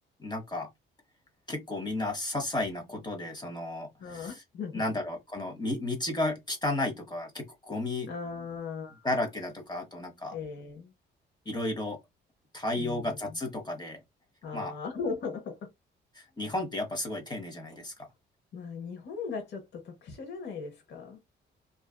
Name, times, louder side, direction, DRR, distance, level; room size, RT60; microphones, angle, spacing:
voice 1, 0.2-0.7 1.5-4.4 4.7-8.1 9.0-10.4 11.5-12.0 12.5-14.0 14.5-14.8 16.1-17.9, left 2 dB, 20° left, 0.7 m, -33 dB
voice 2, 4.0-4.8 8.1-9.1 10.3-10.9 12.8-13.4 14.4-15.7 18.5-21.2, left 5 dB, 60° left, 0.9 m, -38 dB
2.6 x 2.3 x 2.2 m
cardioid pair, 90°, 20 cm